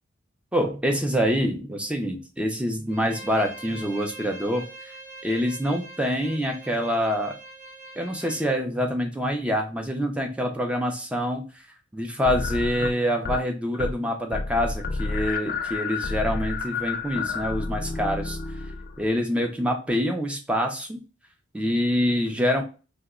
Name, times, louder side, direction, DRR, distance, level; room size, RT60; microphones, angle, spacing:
voice 1, 0.5-4.6 5.2-7.3 8.0-11.5 11.9-18.4 19.0-21.0 21.5-22.6, equal, 5° right, 3 dB, 0.5 m, -26 dB
Bowed string instrument, 2.9-8.5, right 2 dB, 45° right, 0.9 m, -43 dB
sound 1, 12.2-13.4 13.7-14.0 14.3-19.1, left 4 dB, 50° left, 0.4 m, -30 dB
2.9 x 2.1 x 3.6 m, 0.33 s
head